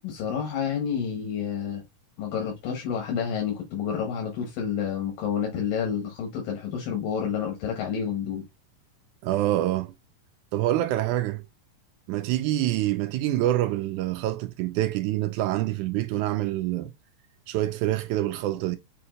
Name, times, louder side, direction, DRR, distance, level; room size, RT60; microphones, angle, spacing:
voice 1, 0.0-1.8 2.2-8.4, left 7 dB, 85° left, 3.0 m, -29 dB
voice 2, 9.2-9.9 10.5-11.4 12.1-16.9 17.5-18.8, right 14 dB, 80° right, 1.8 m, -26 dB
6.9 x 2.9 x 2.5 m
omnidirectional pair, 3.8 m